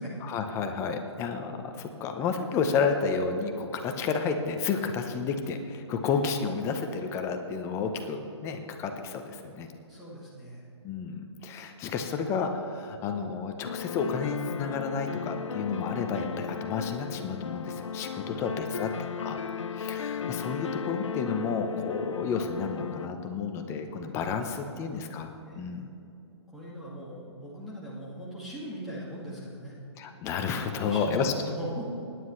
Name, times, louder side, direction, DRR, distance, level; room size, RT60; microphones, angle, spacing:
voice 1, 0.2-9.7 10.8-18.9 19.2-19.4 19.7-25.3 25.6-25.9 30.0-31.3, left 5 dB, 15° left, 5 dB, 0.8 m, -31 dB
voice 2, 9.9-10.6 18.3-19.1 24.3-25.0 25.5-25.8 26.5-29.7 30.8-31.2 31.5-31.8, equal, ahead, -9 dB, 2.1 m, -41 dB
sound 1, 13.6-23.1, left 7 dB, 85° left, 0.5 m, -35 dB
20.0 x 9.8 x 3.2 m, 2.8 s
hypercardioid pair, 145°, 15 cm